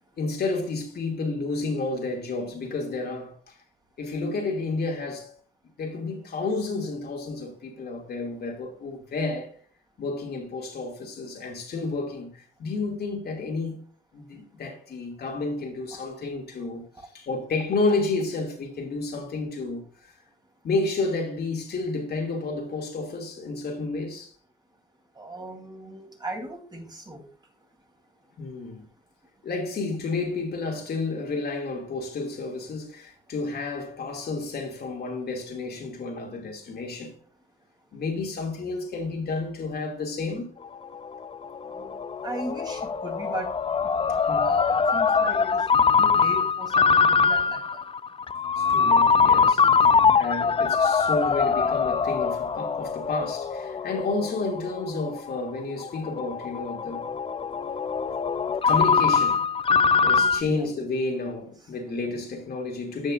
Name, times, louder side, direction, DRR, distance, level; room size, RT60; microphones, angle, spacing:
voice 1, 0.2-3.6 4.0-5.3 5.8-9.5 10.0-13.8 14.1-16.8 17.1-20.1 20.6-24.3 28.4-28.8 29.4-37.1 37.9-40.5 44.3-44.5 48.6-57.1 58.0-58.1 58.6-59.4 60.0-63.1, left 3 dB, 55° left, 2.6 m, -31 dB
voice 2, 25.2-27.3 41.6-43.5 44.4-45.6 46.0-47.8 60.4-60.7, right 1 dB, 20° right, 3.3 m, -37 dB
Ringtone, 40.6-60.4, left 5 dB, 25° left, 0.5 m, -23 dB
15.0 x 5.3 x 2.6 m
cardioid pair, 90°, 20 cm